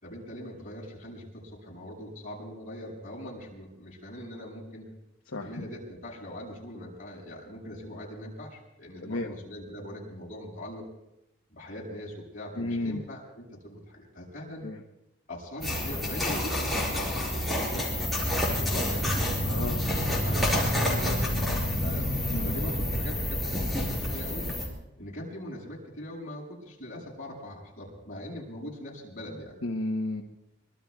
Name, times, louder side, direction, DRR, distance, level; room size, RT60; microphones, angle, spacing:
voice 1, 0.0-4.9 5.4-10.9 11.5-14.7 15.3-19.2 19.9-21.4 21.8-22.1 22.4-24.5 25.0-29.6, left 1 dB, 40° left, -4 dB, 6.8 m, -41 dB
voice 2, 5.3-5.6 9.0-9.3 12.6-13.0 14.6-14.8 19.4-19.8 22.3-22.6 29.6-30.2, left 2 dB, 80° left, 1 dB, 1.1 m, -32 dB
sound 1, 15.6-24.7, left 1 dB, ahead, 4.9 m, -28 dB
25.0 x 24.0 x 2.4 m, 0.85 s
head